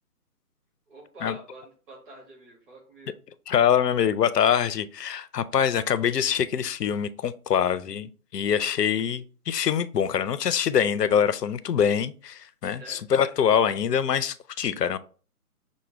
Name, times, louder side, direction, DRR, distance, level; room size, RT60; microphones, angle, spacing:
voice 1, 0.9-3.1 12.7-13.0, right 1 dB, 35° right, 1.9 m, -47 dB
voice 2, 3.5-15.0, left 8 dB, 90° left, 0.6 m, -24 dB
6.1 x 2.1 x 3.1 m
figure-of-eight pair, 155°, 46 cm